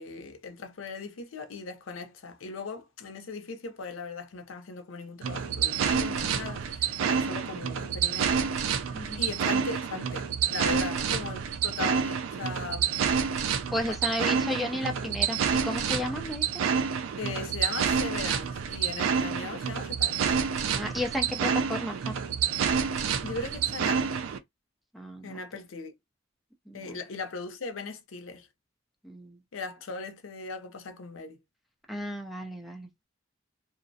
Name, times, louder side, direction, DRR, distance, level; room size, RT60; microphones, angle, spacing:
voice 1, 0.0-8.5 9.2-14.4 17.2-20.5 23.2-24.2 25.2-25.9 26.7-28.5 29.5-31.4, left 4 dB, 90° left, 0.5 m, -39 dB
sound 1, 5.2-24.4, right 7 dB, 85° right, 0.4 m, -28 dB
voice 2, 13.7-15.4 15.6-16.6 20.7-22.1 24.9-25.4 26.7-27.0 29.0-29.4 31.9-32.9, left 1 dB, ahead, 0.4 m, -33 dB
2.5 x 2.0 x 2.6 m
head